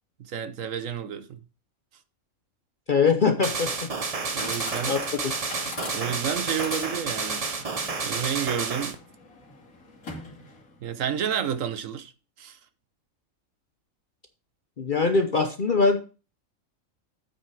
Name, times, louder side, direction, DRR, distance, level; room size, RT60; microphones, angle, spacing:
voice 1, 0.2-1.4 4.3-5.0 5.6-7.7 8.0-9.0 10.8-12.1 12.4-12.6, right 8 dB, 70° right, 1.2 m, -31 dB
voice 2, 2.9-3.9 4.9-5.0 5.2-5.3 14.8-16.0, left 4 dB, 45° left, 0.8 m, -22 dB
sound 1, 3.4-9.0, right 4 dB, 30° right, 0.8 m, -30 dB
Chatter / Coin (dropping), 3.8-10.8, left 3 dB, 85° left, 2.9 m, -42 dB
8.3 x 6.3 x 4.7 m
omnidirectional pair, 1.4 m